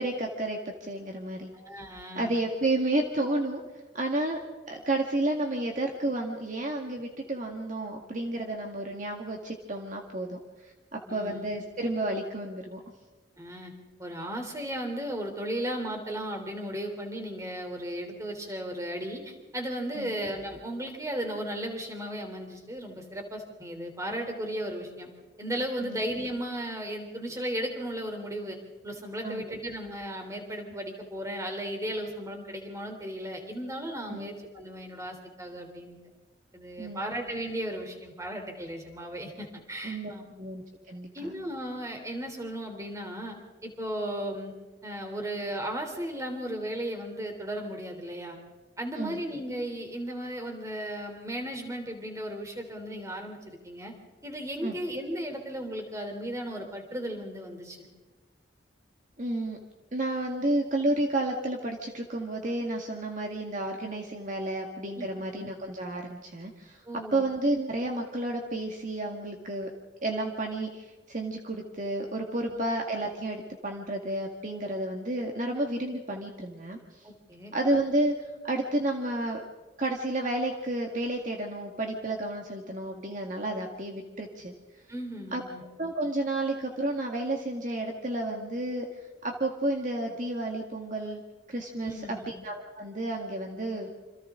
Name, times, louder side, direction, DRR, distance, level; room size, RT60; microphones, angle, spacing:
voice 1, 0.0-1.5 2.2-3.6 3.9-4.4 4.7-12.8 20.0-20.1 25.8-26.0 29.2-29.6 34.1-34.3 36.8-37.1 39.8-40.1 40.4-41.3 49.0-49.2 54.6-54.8 59.2-59.6 59.9-66.8 67.1-69.7 70.0-76.8 77.5-78.2 78.4-79.4 79.8-84.5 85.3-85.4 85.8-88.9 89.2-91.2 91.5-93.9, right 1 dB, 45° right, 1 dB, 1.7 m, -31 dB
voice 2, 1.5-2.3 11.0-11.5 13.4-13.7 14.0-25.1 25.4-28.6 28.8-36.0 36.5-40.3 41.1-43.3 43.6-44.5 44.8-48.4 48.8-53.9 54.2-57.8 65.0-65.1 66.8-67.2 72.4-72.5 77.0-77.5 84.9-85.6 91.8-92.3, equal, 15° right, 3 dB, 3.3 m, -35 dB
27.5 x 26.5 x 3.8 m, 1.2 s
head